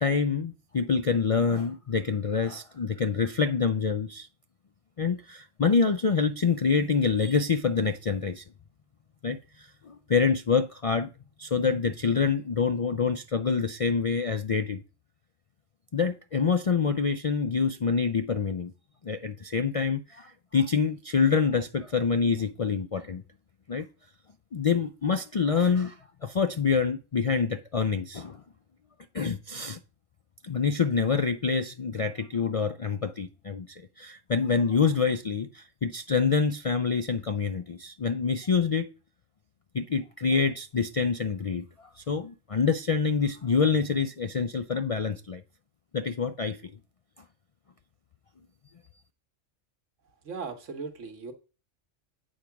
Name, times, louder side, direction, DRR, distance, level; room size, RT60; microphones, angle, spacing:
voice 1, 0.0-4.3 5.0-8.4 9.2-11.1 11.4-14.8 15.9-18.7 19.0-23.2 23.7-23.9 24.5-28.4 29.1-29.8 30.4-38.9 39.7-41.6 42.0-45.4 45.9-46.6, left 5 dB, 55° left, 0.3 m, -26 dB
voice 2, 50.2-51.3, right 4 dB, 85° right, 1.5 m, -37 dB
8.7 x 4.7 x 5.8 m
omnidirectional pair, 1.2 m